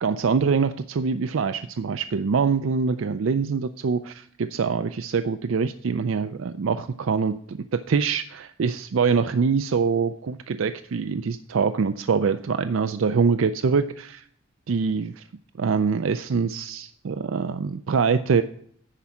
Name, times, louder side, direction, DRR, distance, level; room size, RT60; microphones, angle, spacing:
voice 1, 0.0-14.2 14.7-15.2 15.6-18.4, right 5 dB, 70° right, 10 dB, 0.4 m, -24 dB
10.0 x 4.8 x 7.0 m, 0.62 s
head